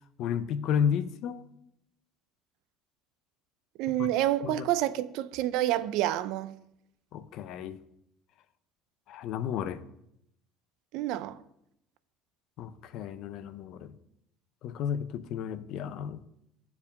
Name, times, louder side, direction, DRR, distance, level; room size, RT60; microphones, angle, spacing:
voice 1, 0.2-1.5 4.0-4.1 4.4-4.6 7.1-7.8 9.1-9.8 12.6-13.9 14.6-16.2, left 8 dB, 50° left, 0.5 m, -32 dB
voice 2, 3.8-6.5 10.9-11.4, right 13 dB, 65° right, 0.4 m, -28 dB
7.3 x 4.7 x 6.6 m
cardioid pair, 170°, 0 cm